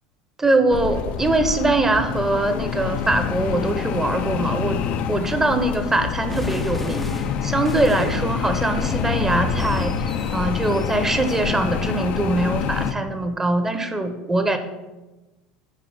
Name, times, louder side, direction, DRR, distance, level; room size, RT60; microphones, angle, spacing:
voice 1, 0.4-14.6, right 2 dB, 15° right, 8 dB, 1.1 m, -22 dB
sound 1, 0.7-12.9, left 7 dB, 50° left, 0.6 m, -26 dB
sound 2, 6.3-11.4, equal, 5° left, 0.7 m, -35 dB
8.7 x 5.1 x 5.2 m, 1.1 s
hypercardioid pair, 75°, 3 cm